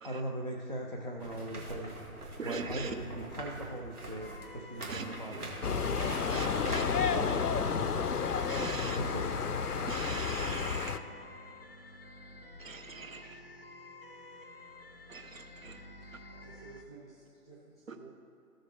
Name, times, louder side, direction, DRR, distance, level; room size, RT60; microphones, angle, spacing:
voice 1, 0.0-2.0 2.4-8.0 8.5-9.3, right 1 dB, 35° right, 0.4 m, -40 dB
sound 1, 1.2-6.8, right 2 dB, 80° right, 2.0 m, -43 dB
voice 2, 2.4-2.9 4.9-5.2 6.3-6.9 8.5-9.0 9.9-11.0 12.6-13.4 15.1-15.8 16.1-16.2 17.9-18.0, right 4 dB, 60° right, 0.9 m, -42 dB
sound 2, 4.2-16.8, left 2 dB, 40° left, 0.5 m, -50 dB
sound 3, 5.6-11.0, left 6 dB, 80° left, 0.7 m, -31 dB
voice 3, 16.3-18.1, right 4 dB, 5° left, 0.7 m, -53 dB
15.0 x 6.4 x 3.1 m
figure-of-eight pair, 145°, 45 cm